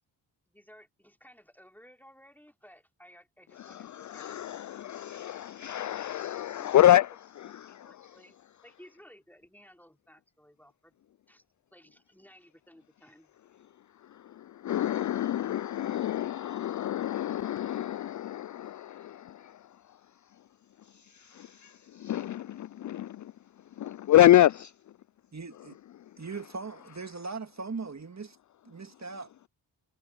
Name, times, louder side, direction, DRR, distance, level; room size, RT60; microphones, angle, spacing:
voice 1, 0.5-4.4 7.4-8.4 8.6-11.0 11.3-11.4 11.7-13.3, equal, 5° left, 3.8 m, -56 dB
voice 2, 3.6-7.1 7.4-7.7 14.6-19.0 22.0-23.1 23.8-24.7, left 12 dB, 40° left, 0.4 m, -26 dB
voice 3, 25.3-25.8 26.2-28.4 28.7-29.3, right 4 dB, 35° right, 1.9 m, -39 dB
supercardioid pair, 40°, 49 cm